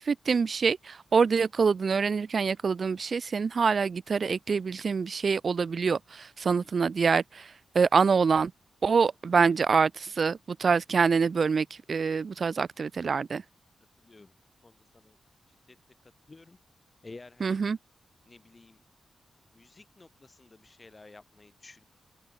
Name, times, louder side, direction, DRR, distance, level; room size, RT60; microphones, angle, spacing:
voice 1, 0.0-8.5 8.8-13.4 17.4-17.8, right 5 dB, 55° right, 3.8 m, -25 dB
voice 2, 17.0-17.6 18.3-18.8 19.5-21.8, left 3 dB, 30° left, 7.3 m, -51 dB
open air
cardioid pair, 90°, 0 cm